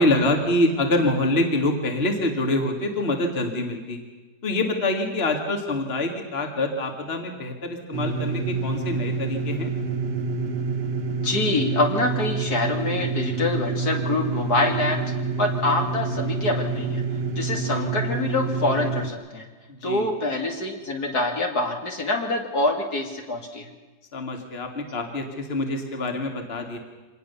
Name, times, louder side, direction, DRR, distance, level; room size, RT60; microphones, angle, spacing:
voice 1, 0.0-4.0 4.4-9.7 19.7-20.1 24.1-26.8, left 1 dB, 30° left, 4 dB, 2.3 m, -25 dB
sound 1, 7.9-19.1, right 4 dB, 60° right, 1.9 m, -27 dB
voice 2, 11.2-15.0 15.4-17.0 17.4-19.5 19.8-23.7, left 2 dB, 55° left, 2 dB, 2.8 m, -25 dB
25.0 x 19.0 x 7.0 m, 1.2 s
omnidirectional pair, 2.0 m